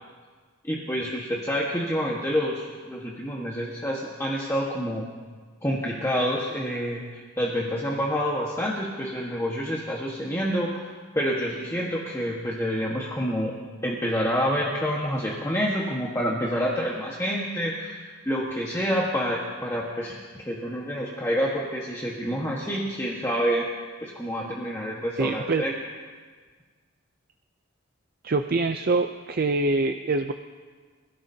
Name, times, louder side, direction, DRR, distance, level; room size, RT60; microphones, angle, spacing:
voice 1, 0.6-5.1 5.6-13.5 13.8-23.6 24.0-25.7, equal, 15° left, -4 dB, 1.4 m, -28 dB
voice 2, 25.2-25.6 28.2-30.3, right 3 dB, 45° right, 7 dB, 0.5 m, -24 dB
27.0 x 16.0 x 2.8 m, 1.5 s
head